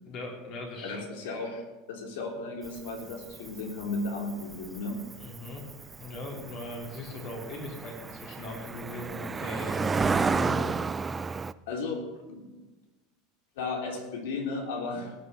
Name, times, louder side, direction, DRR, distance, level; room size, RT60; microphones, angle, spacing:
voice 1, 0.0-1.0 5.2-5.6 6.0-10.7 11.1-11.2, left 2 dB, 45° left, 0 dB, 3.4 m, -39 dB
voice 2, 0.8-1.6 1.9-5.0 11.7-12.0 12.3-12.6 13.6-15.1, left 3 dB, 85° left, 1 dB, 3.7 m, -34 dB
Cricket, 2.6-11.5, right 4 dB, 15° right, 0.3 m, -32 dB
19.0 x 6.8 x 6.9 m, 1.2 s
supercardioid pair, 155°, 0 cm